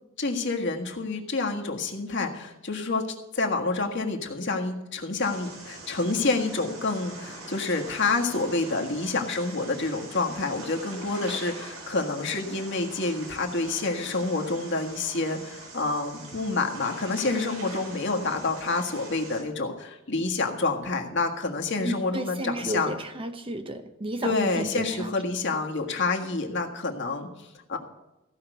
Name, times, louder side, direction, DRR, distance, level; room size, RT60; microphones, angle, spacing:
voice 1, 0.2-3.0 3.3-22.9 24.2-27.8, left 3 dB, 55° left, 3 dB, 1.6 m, -28 dB
sound 1, 5.2-19.4, right 2 dB, 80° right, 3.5 m, -43 dB
voice 2, 21.8-25.1, right 1 dB, 25° right, 8 dB, 0.8 m, -32 dB
15.5 x 5.7 x 7.9 m, 0.97 s
head